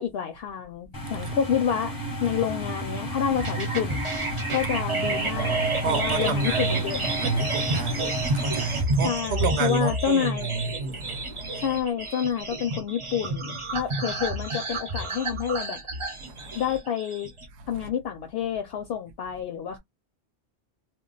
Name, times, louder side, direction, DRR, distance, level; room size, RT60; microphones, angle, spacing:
voice 1, 0.0-1.9 2.2-4.0 4.5-5.6 5.8-7.2 9.0-10.5 11.6-15.8 16.5-17.3 17.7-19.8, left 8 dB, 65° left, 0.7 m, -28 dB
sound 1, 0.9-8.8, right 1 dB, 20° left, 0.7 m, -33 dB
sound 2, 3.4-17.5, right 2 dB, 30° right, 0.7 m, -30 dB
voice 2, 4.3-4.7 5.0-11.8 14.0-14.1 16.2-16.6 17.6-17.9, right 4 dB, 75° right, 0.9 m, -31 dB
2.3 x 2.2 x 3.7 m
omnidirectional pair, 1.1 m